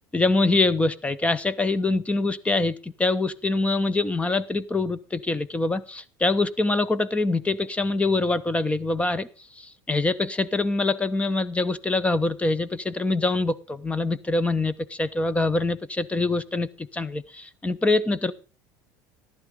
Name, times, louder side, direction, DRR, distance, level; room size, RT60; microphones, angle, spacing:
voice 1, 0.1-9.3 9.6-18.3, left 2 dB, 10° left, 1.0 m, -24 dB
14.5 x 11.5 x 3.8 m
supercardioid pair, 115°, 10 cm